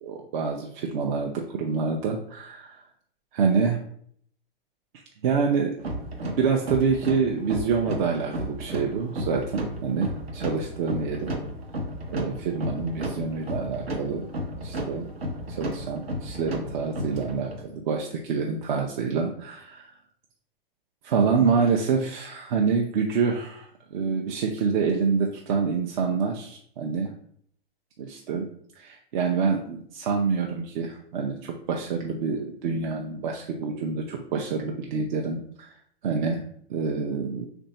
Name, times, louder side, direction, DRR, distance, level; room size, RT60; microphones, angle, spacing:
voice 1, 0.1-2.8 3.3-3.8 5.2-5.7 6.2-11.3 12.1-14.3 14.6-15.1 15.5-19.9 21.0-27.1 28.0-28.5 28.8-35.7 36.0-36.4 36.7-37.5, right 5 dB, 50° right, 1 dB, 0.6 m, -27 dB
sound 1, 5.8-17.6, equal, 85° right, 1.0 m, -33 dB
3.4 x 2.6 x 4.1 m, 0.63 s
hypercardioid pair, 125°, 30 cm